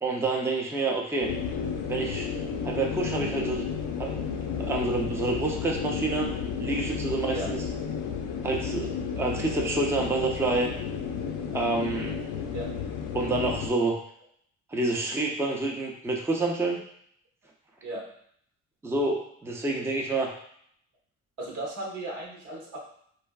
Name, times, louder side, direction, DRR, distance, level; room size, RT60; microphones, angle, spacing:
voice 1, 0.0-1.3 1.8-2.3 2.6-3.7 4.0-4.2 4.6-6.3 6.6-7.6 8.4-10.7 11.5-12.2 13.1-14.0 14.7-16.8 18.8-20.3, right 2 dB, 10° right, 0 dB, 0.5 m, -28 dB
sound 1, 1.2-13.7, left 6 dB, 75° left, 0.5 m, -32 dB
voice 2, 21.4-22.8, right 2 dB, 80° right, -2 dB, 1.0 m, -36 dB
3.2 x 2.4 x 2.3 m, 0.66 s
cardioid pair, 90°, 30 cm